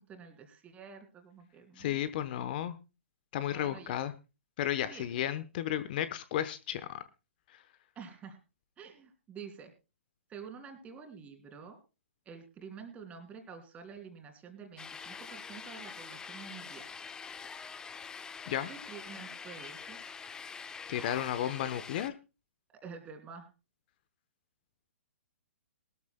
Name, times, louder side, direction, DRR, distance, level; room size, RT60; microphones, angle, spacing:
voice 1, 0.0-2.0 3.5-4.0 4.9-5.1 7.9-8.4 8.8-9.7 10.3-11.8 12.2-16.9 18.7-20.0 22.8-23.5, right 6 dB, 20° right, 5 dB, 2.9 m, -48 dB
voice 2, 1.8-2.7 3.3-4.1 4.6-7.0 18.5-18.7 20.9-22.1, left 11 dB, 45° left, 13 dB, 0.9 m, -33 dB
sound 1, 14.8-22.1, left 5 dB, 10° left, 0.6 m, -45 dB
20.5 x 13.0 x 2.2 m, 0.29 s
figure-of-eight pair, 120°, 7 cm